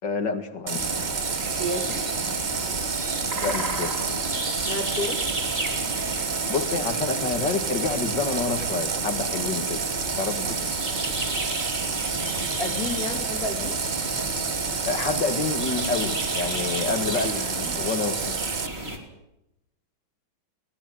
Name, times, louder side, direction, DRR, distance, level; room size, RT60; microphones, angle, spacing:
voice 1, 0.0-0.8 3.3-4.0 6.5-9.8 10.2-10.5 14.9-18.3, left 4 dB, 60° left, 7 dB, 2.6 m, -28 dB
Water tap faucet, 0.7-18.7, right 5 dB, 55° right, 0.5 m, -29 dB
sound 1, 0.8-19.0, right 1 dB, 30° right, 3.6 m, -33 dB
voice 2, 1.6-2.1 4.6-5.2 12.6-13.8, left 1 dB, 45° left, 5 dB, 2.7 m, -31 dB
22.0 x 18.0 x 7.8 m, 0.86 s
omnidirectional pair, 2.2 m